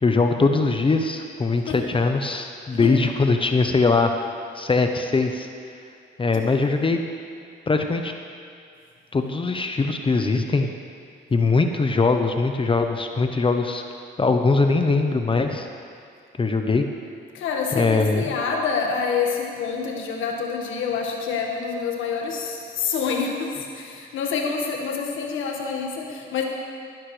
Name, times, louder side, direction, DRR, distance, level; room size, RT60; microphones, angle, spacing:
voice 1, 0.0-4.2 4.5-5.5 6.2-7.0 7.7-8.1 9.1-10.7 11.3-13.8 14.2-15.7 16.4-16.9 17.7-18.3, left 3 dB, 25° left, 5 dB, 0.8 m, -21 dB
voice 2, 17.3-26.4, left 5 dB, 80° left, 0 dB, 1.7 m, -27 dB
15.0 x 12.0 x 3.3 m, 2.3 s
cardioid pair, 90°, 20 cm